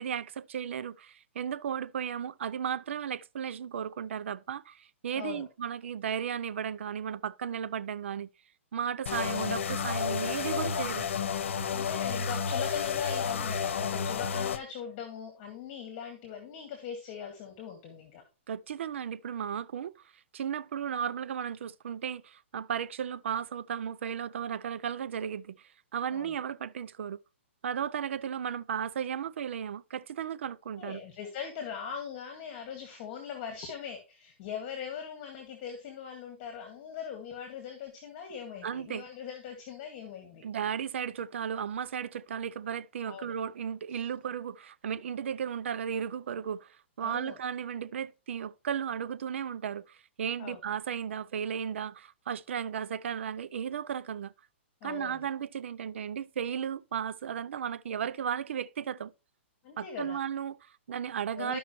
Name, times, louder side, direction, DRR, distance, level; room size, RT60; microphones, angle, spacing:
voice 1, 0.0-8.3 8.7-11.1 18.5-19.9 20.3-27.2 27.6-31.0 38.6-39.0 40.4-54.3 54.8-59.1 59.8-61.6, right 8 dB, 70° right, 0.5 m, -35 dB
voice 2, 5.1-5.5 11.7-18.2 26.1-26.4 30.8-40.4 43.1-43.4 43.9-44.1 47.0-47.4 50.4-50.6 54.8-55.3 59.6-60.2 61.4-61.6, left 7 dB, 35° left, 1.9 m, -41 dB
sound 1, 9.1-14.6, left 6 dB, 75° left, 0.9 m, -31 dB
13.0 x 5.5 x 3.1 m
hypercardioid pair, 155°, 7 cm